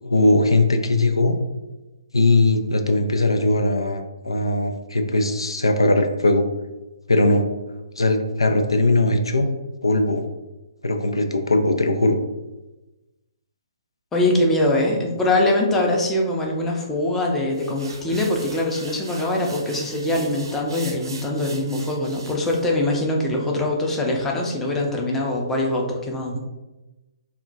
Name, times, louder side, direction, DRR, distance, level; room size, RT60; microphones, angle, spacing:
voice 1, 0.0-1.4 2.1-6.5 7.1-7.5 8.0-9.5 9.8-10.3 10.8-12.2, left 2 dB, 90° left, 6 dB, 0.3 m, -19 dB
voice 2, 14.1-26.4, left 1 dB, 10° left, -1 dB, 0.5 m, -23 dB
sound 1, 17.5-22.7, right 3 dB, 65° right, 0.6 m, -41 dB
2.2 x 2.1 x 3.8 m, 1.1 s
figure-of-eight pair, 135°, 3 cm